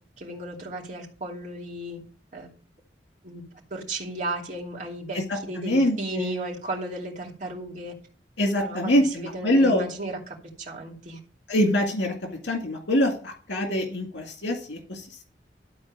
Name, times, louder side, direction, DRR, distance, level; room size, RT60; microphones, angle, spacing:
voice 1, 0.2-2.0 2.3-2.5 3.2-3.4 3.7-7.9 8.6-11.2, right 1 dB, 45° right, -2 dB, 2.8 m, -35 dB
voice 2, 5.6-6.3 8.4-9.8 11.5-12.1 12.4-15.2, left 1 dB, 85° left, 2 dB, 2.1 m, -24 dB
12.5 x 4.4 x 7.4 m, 0.40 s
head